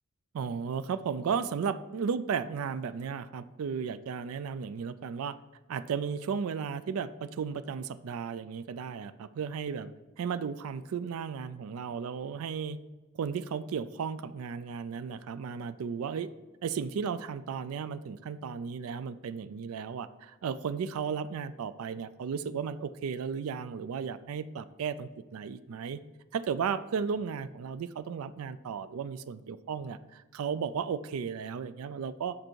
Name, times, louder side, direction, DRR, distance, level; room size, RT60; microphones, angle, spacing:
voice 1, 0.3-5.4 5.7-9.9 10.2-12.8 13.2-16.3 16.6-26.0 26.3-32.4, right 6 dB, 85° right, 15 dB, 0.4 m, -34 dB
7.7 x 5.4 x 4.5 m, 1.2 s
head